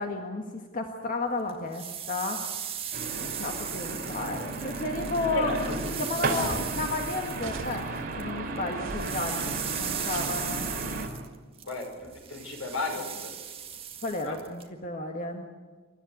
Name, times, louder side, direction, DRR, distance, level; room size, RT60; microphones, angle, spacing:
voice 1, 0.0-2.5 3.2-5.6 6.0-7.9 8.2-10.7 14.0-15.5, left 2 dB, 40° left, 3 dB, 1.7 m, -32 dB
sound 1, 1.5-8.3 8.6-14.7, right 8 dB, 25° right, 1.8 m, -38 dB
sound 2, 2.9-11.1, right 2 dB, 45° right, 3.8 m, -34 dB
voice 2, 5.3-5.8 11.7-13.1 14.2-14.4, left 2 dB, 80° left, 3 dB, 6.2 m, -34 dB
sound 3, 6.2-6.7 7.4-8.0 8.8-9.3 10.1-10.9, right 3 dB, 70° right, 3.2 m, -41 dB
28.0 x 14.0 x 9.4 m, 1.4 s
head